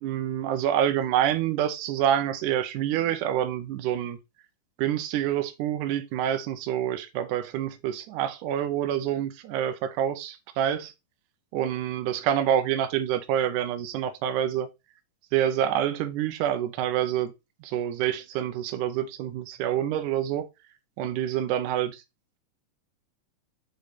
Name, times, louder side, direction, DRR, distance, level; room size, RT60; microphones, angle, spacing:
voice 1, 0.0-4.2 4.8-10.9 11.5-14.7 15.3-17.3 17.6-20.5 21.0-21.9, right 10 dB, 75° right, 2.1 m, -27 dB
5.2 x 5.1 x 4.2 m
omnidirectional pair, 3.8 m